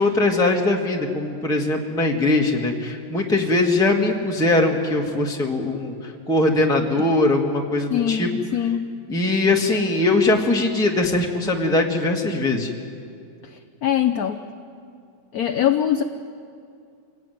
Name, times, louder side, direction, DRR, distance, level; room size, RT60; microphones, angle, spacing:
voice 1, 0.0-8.3 9.1-12.7, left 2 dB, ahead, 0 dB, 1.6 m, -21 dB
voice 2, 7.9-8.8 13.8-14.4 15.3-16.0, left 10 dB, 60° left, 7 dB, 1.1 m, -22 dB
25.5 x 18.0 x 9.3 m, 2.4 s
omnidirectional pair, 2.0 m